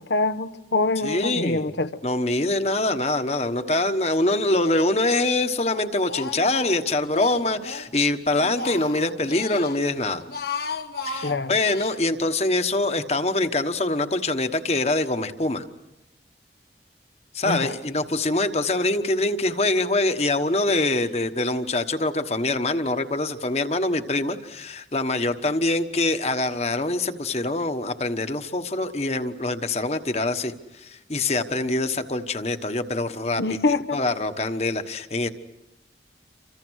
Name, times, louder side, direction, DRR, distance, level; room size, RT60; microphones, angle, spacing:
voice 1, 0.0-1.9 11.2-11.6 17.4-17.8 33.4-34.0, left 3 dB, 80° left, 1.1 m, -25 dB
voice 2, 1.0-1.7 2.0-10.2 11.0-15.6 17.3-33.4 33.7-35.3, left 2 dB, 35° left, 1.3 m, -24 dB
Speech, 4.1-4.8 5.1-7.9 8.3-9.8 10.2-12.0, left 4 dB, 60° left, 1.4 m, -35 dB
29.5 x 26.0 x 6.4 m
head